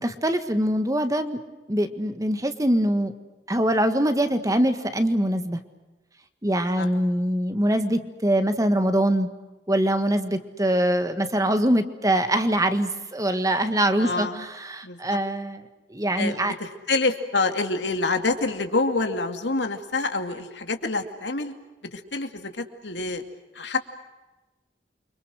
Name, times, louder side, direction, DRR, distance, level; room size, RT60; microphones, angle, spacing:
voice 1, 0.0-1.4 1.7-3.1 3.5-5.6 6.4-9.3 9.7-15.6 15.9-16.5, right 1 dB, 20° right, 9 dB, 1.6 m, -23 dB
voice 2, 14.0-14.5 14.8-15.2 16.2-21.5 21.9-23.2 23.5-23.8, left 3 dB, 80° left, 6 dB, 2.5 m, -27 dB
29.5 x 25.0 x 6.4 m, 1.1 s
head